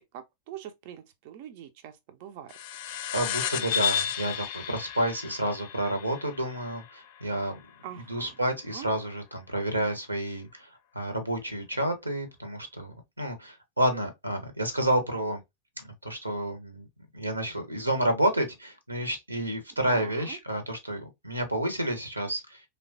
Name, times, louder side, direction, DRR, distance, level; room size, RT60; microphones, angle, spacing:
voice 1, 0.1-2.5 7.8-8.4 8.7-8.9 19.9-20.4, right 10 dB, 50° right, 0.4 m, -44 dB
sound 1, 2.5-7.4, left 9 dB, 50° left, 0.3 m, -33 dB
voice 2, 3.1-7.6 8.1-10.7 10.9-15.4 15.8-16.8 17.1-22.6, right 1 dB, 85° right, 0.6 m, -30 dB
3.1 x 2.1 x 2.5 m
figure-of-eight pair, 90°, 0 cm